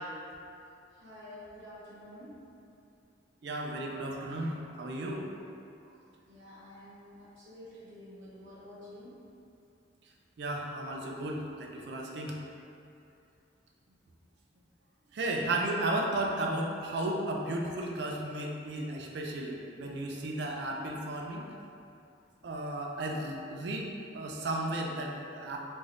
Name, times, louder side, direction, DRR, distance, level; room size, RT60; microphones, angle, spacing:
voice 1, 0.9-2.4 6.3-9.2, left 1 dB, 85° right, -9 dB, 0.9 m, -49 dB
voice 2, 3.4-5.3 10.4-12.3 15.1-21.5 22.4-23.9 24.1-25.6, right 1 dB, 60° right, 0 dB, 0.4 m, -34 dB
2.6 x 2.4 x 3.3 m, 2.6 s
head